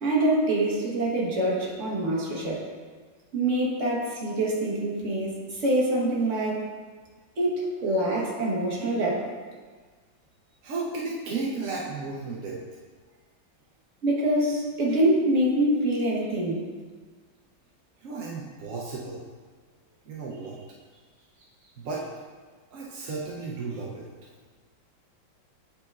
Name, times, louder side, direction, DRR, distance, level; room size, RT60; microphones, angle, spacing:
voice 1, 0.0-2.7 3.3-6.7 7.4-9.3 14.0-16.7, right 1 dB, 45° right, -3 dB, 1.2 m, -25 dB
voice 2, 10.6-12.6 18.0-19.3 20.0-20.6 21.8-22.0 22.7-24.1, right 3 dB, 65° right, -4 dB, 0.8 m, -34 dB
9.4 x 4.3 x 2.4 m, 1.5 s
omnidirectional pair, 2.1 m